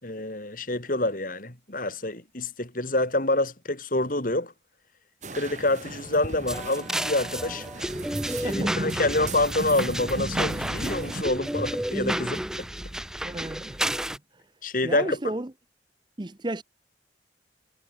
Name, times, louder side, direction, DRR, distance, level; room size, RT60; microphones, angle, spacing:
voice 1, 0.0-4.5 5.3-7.8 8.4-12.7 14.6-15.3, left 2 dB, 50° left, 3.3 m, -27 dB
sound 1, 5.2-11.2, right 2 dB, 40° right, 1.6 m, -36 dB
sound 2, 6.5-14.2, right 1 dB, 5° right, 0.4 m, -31 dB
voice 2, 8.4-8.8 13.2-14.2 14.8-15.5 16.2-16.6, right 1 dB, 25° right, 0.8 m, -34 dB
head